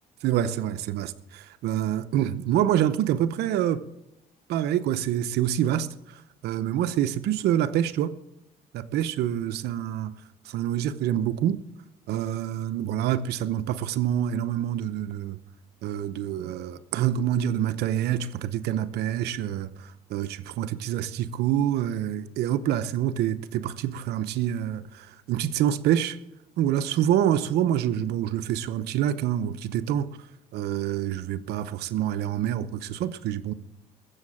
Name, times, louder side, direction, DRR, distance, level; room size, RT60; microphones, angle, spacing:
voice 1, 0.2-3.8 4.5-8.2 8.7-10.2 10.4-11.6 12.1-15.4 15.8-26.2 26.6-30.3 30.5-33.5, right 11 dB, 75° right, 0.8 m, -26 dB
20.5 x 7.6 x 7.3 m
cardioid pair, 110°, 17 cm